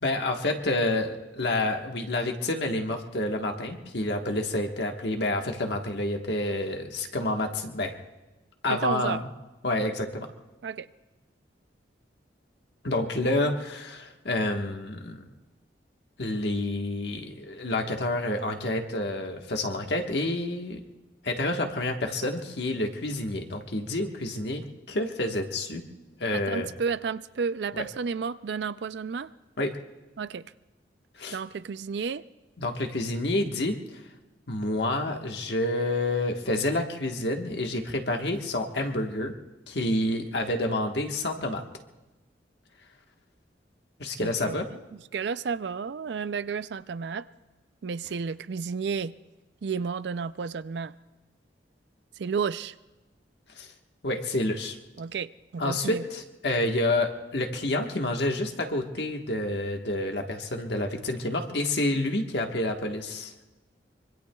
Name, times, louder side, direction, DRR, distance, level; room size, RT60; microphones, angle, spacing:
voice 1, 0.0-7.9 8.6-9.2 9.6-10.3 12.8-15.2 16.2-20.8 21.2-25.8 26.2-26.7 27.7-27.8 29.6-29.7 31.2-31.4 32.6-34.0 34.5-39.3 39.7-41.6 44.0-44.7 53.6-53.7 54.0-54.8 55.6-63.4, left 1 dB, 65° left, 1.4 m, -28 dB
voice 2, 8.7-9.2 10.6-10.9 26.3-29.3 30.2-30.5 31.3-32.2 44.2-44.6 45.1-47.3 47.8-49.2 49.6-50.9 52.2-52.7 55.0-56.0, right 5 dB, 65° right, 0.4 m, -32 dB
25.0 x 24.5 x 2.3 m
head